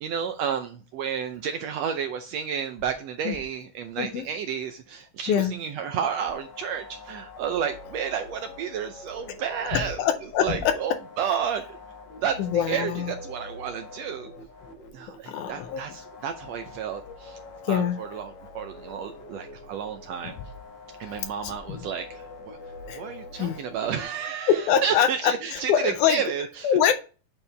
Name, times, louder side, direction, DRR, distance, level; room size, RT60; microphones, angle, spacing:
voice 1, 0.0-10.0 10.4-11.6 12.2-14.3 14.9-17.4 17.7-20.3 21.0-22.6 23.0-26.7, right 7 dB, 80° right, 1.5 m, -31 dB
sound 1, 5.7-24.0, left 3 dB, 60° left, 1.2 m, -45 dB
voice 2, 9.7-10.7 12.4-13.1 15.3-15.8 17.7-18.0 20.2-20.3 21.0-21.9 22.9-23.0 23.3-23.6 24.5-26.2 26.6-26.9, left 9 dB, 80° left, 2.1 m, -24 dB
8.5 x 4.5 x 3.3 m
omnidirectional pair, 3.7 m